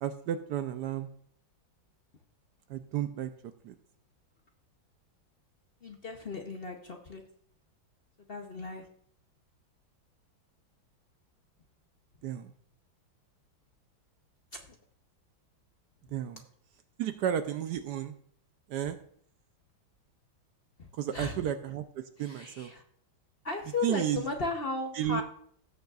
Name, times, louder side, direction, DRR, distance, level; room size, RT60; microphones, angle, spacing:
voice 1, 0.0-1.1 2.7-3.3 3.6-3.7 12.2-12.5 16.1-16.4 17.0-18.1 18.7-19.0 21.0-22.7 23.8-24.2 25.0-25.2, right 10 dB, 75° right, 9 dB, 1.0 m, -32 dB
voice 2, 5.8-7.2 8.3-8.8 14.5-14.8 20.8-21.4 22.2-22.8 23.4-25.2, left 3 dB, 65° left, 3 dB, 0.5 m, -36 dB
17.5 x 6.6 x 2.4 m, 0.62 s
omnidirectional pair, 2.2 m